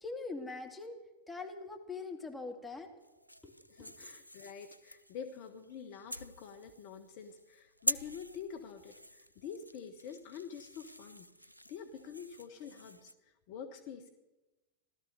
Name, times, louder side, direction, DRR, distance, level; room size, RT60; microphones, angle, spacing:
voice 1, 0.0-1.0 1.3-2.9 3.4-3.5 3.8-3.9, left 3 dB, 10° left, 2 dB, 2.4 m, -42 dB
sound 1, 3.0-13.1, equal, 90° right, 0.4 m, -44 dB
voice 2, 3.7-11.3 11.7-13.1 13.5-14.1, left 7 dB, 45° left, 7 dB, 1.4 m, -47 dB
16.5 x 13.0 x 6.7 m, 1.1 s
figure-of-eight pair, 90°, 0 cm